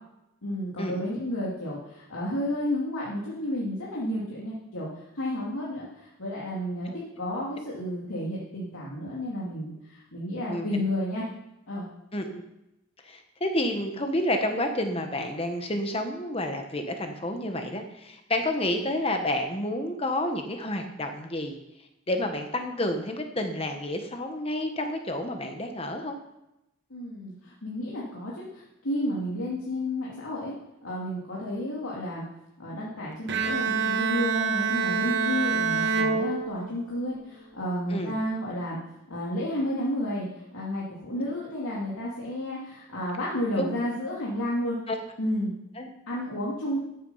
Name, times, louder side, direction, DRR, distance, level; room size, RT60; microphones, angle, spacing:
voice 1, 0.4-6.9 7.2-11.2 11.7-11.9 26.9-30.5 30.8-32.2 32.6-38.8 39.1-44.8 45.2-45.5 46.1-46.8, left 1 dB, 90° left, -6 dB, 2.6 m, -31 dB
voice 2, 10.5-10.8 12.1-12.4 13.0-21.6 22.1-26.2 37.9-38.2 43.6-43.7 44.9-45.0 45.8-45.9, left 1 dB, 25° left, 5 dB, 1.2 m, -30 dB
Bowed string instrument, 33.3-37.0, right 5 dB, 55° right, 0.9 m, -26 dB
13.5 x 8.1 x 5.6 m, 0.90 s
head